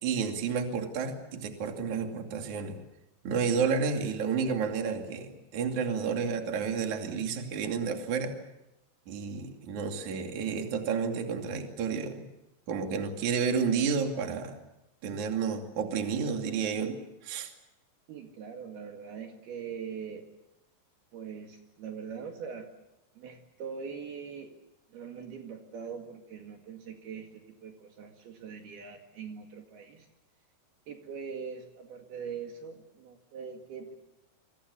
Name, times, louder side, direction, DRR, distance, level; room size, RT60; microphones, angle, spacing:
voice 1, 0.0-2.8 3.2-8.4 9.1-12.3 12.7-14.6 15.0-17.0 17.2-17.5, right 6 dB, 45° right, 4 dB, 3.5 m, -31 dB
voice 2, 18.1-20.3 21.1-22.7 23.2-24.6 24.9-30.1 30.9-33.9, right 6 dB, 65° right, 3 dB, 3.8 m, -42 dB
29.0 x 25.0 x 7.1 m, 0.90 s
omnidirectional pair, 5.2 m